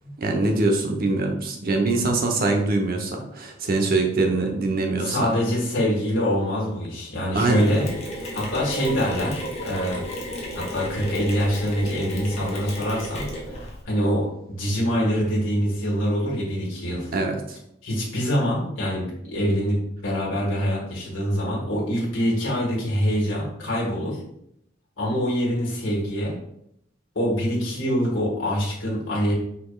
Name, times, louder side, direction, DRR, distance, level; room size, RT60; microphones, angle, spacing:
voice 1, 0.2-5.3 7.3-7.7 17.1-17.6, right 2 dB, 50° right, 3 dB, 0.8 m, -23 dB
voice 2, 5.0-7.9 8.3-10.0 10.5-17.1 17.8-24.2 25.0-26.4 27.1-29.3, equal, 90° left, -5 dB, 1.6 m, -25 dB
Mechanisms, 7.6-13.8, equal, 35° left, 1.1 m, -33 dB
5.3 x 4.2 x 2.3 m, 0.76 s
head